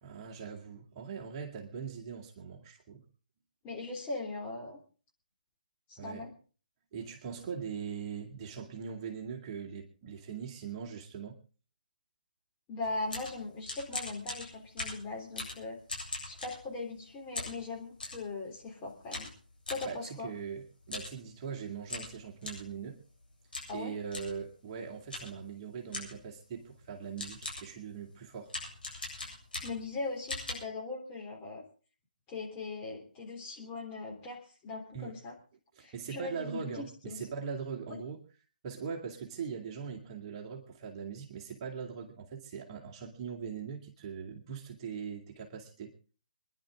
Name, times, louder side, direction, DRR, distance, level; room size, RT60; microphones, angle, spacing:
voice 1, 0.0-3.0 6.0-6.3 6.9-11.4 19.8-23.0 23.7-28.5 34.9-35.1 35.8-38.2 38.6-45.9, right 6 dB, 30° right, 1 dB, 2.4 m, -41 dB
voice 2, 3.6-4.8 5.9-6.3 12.7-15.8 16.2-19.3 19.7-20.3 23.7-24.0 29.5-31.6 32.3-35.3 35.8-37.2, left 3 dB, 20° left, -1 dB, 3.4 m, -40 dB
sound 1, 12.8-17.0 17.3-18.3 19.1-19.9 20.8-21.2 21.4-21.5 21.9-22.7 23.5-23.8 24.1-24.4 25.1-25.4 25.9-26.3 26.8-26.9 27.2-27.8 28.5-29.9 30.3-30.5, left 2 dB, 80° left, 7.6 m, -40 dB
26.0 x 11.0 x 3.7 m, 0.37 s
figure-of-eight pair, 140°, 5 cm